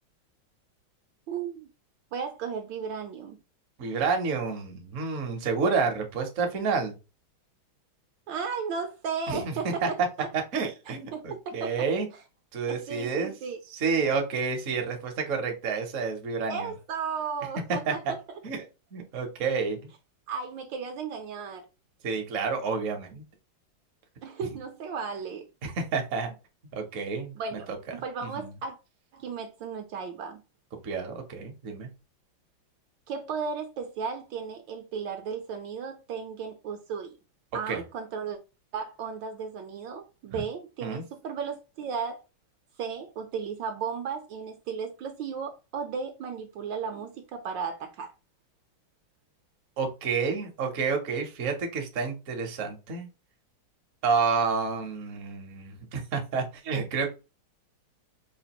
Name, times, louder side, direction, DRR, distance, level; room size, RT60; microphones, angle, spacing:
voice 1, 1.3-1.7 2.1-3.4 8.3-10.3 10.9-11.9 12.7-13.6 16.5-18.2 20.3-21.6 24.2-25.5 27.3-27.7 28.0-28.8 29.1-30.4 33.1-37.1 37.5-38.4 38.7-42.2 42.8-48.1, right 6 dB, 75° right, 1.2 m, -35 dB
voice 2, 3.8-6.9 9.3-9.9 10.3-12.1 12.5-13.3 13.7-16.7 17.9-18.1 18.4-18.6 18.9-19.8 22.0-23.2 25.6-26.3 26.7-27.6 28.4-28.5 30.8-31.9 37.7-37.8 40.3-40.4 40.8-41.0 49.8-53.1 54.0-57.1, right 5 dB, 55° right, 0.9 m, -29 dB
5.0 x 2.4 x 2.9 m
omnidirectional pair, 2.3 m